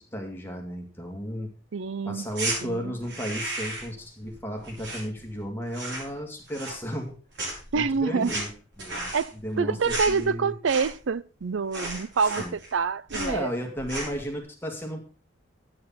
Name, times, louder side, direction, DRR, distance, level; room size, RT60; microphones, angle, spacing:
voice 1, 0.1-1.5 2.1-7.2 7.7-8.5 8.8-9.2 9.4-10.5 12.4-12.5 13.1-15.1, equal, 10° left, 2.1 m, -34 dB
voice 2, 1.7-2.3 2.6-2.9 7.7-8.3 9.1-13.5, right 5 dB, 80° right, 0.5 m, -27 dB
sound 1, 2.3-2.6 3.0-4.0 4.2-5.4 5.7-6.2 6.5-7.1 7.3-11.1 11.4-11.5 11.7-12.8 13.1-13.4 13.8-14.2, right 2 dB, 60° right, 6.6 m, -34 dB
11.5 x 9.0 x 5.6 m
head